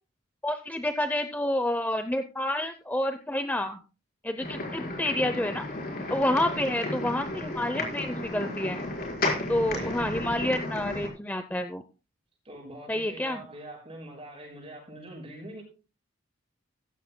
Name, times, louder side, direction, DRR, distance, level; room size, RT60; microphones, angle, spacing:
voice 1, 0.4-3.8 4.2-5.6 6.1-8.8 9.5-11.8 12.9-13.4, left 1 dB, 10° left, 8 dB, 0.6 m, -29 dB
sound 1, 4.4-11.1, left 2 dB, 45° left, 4.6 m, -33 dB
voice 2, 6.4-6.7 9.6-10.1 12.4-15.6, right 1 dB, 30° right, 1 dB, 6.7 m, -44 dB
15.0 x 15.0 x 2.2 m, 0.34 s
head